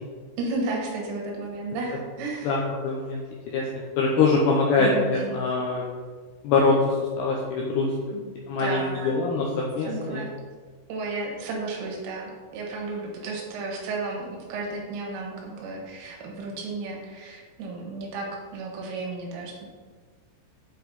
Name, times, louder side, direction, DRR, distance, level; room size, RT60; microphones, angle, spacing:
voice 1, 0.4-2.6 4.2-4.3 4.8-5.4 8.1-8.3 8.6-9.2 9.9-10.3 10.9-18.3 18.5-19.7, right 3 dB, 85° right, -1 dB, 3.8 m, -33 dB
voice 2, 2.4-3.2 3.5-3.6 4.0-5.8 6.4-7.9 8.5-10.2, left 3 dB, 85° left, -2 dB, 2.4 m, -23 dB
8.4 x 4.6 x 4.0 m, 1.5 s
omnidirectional pair, 5.7 m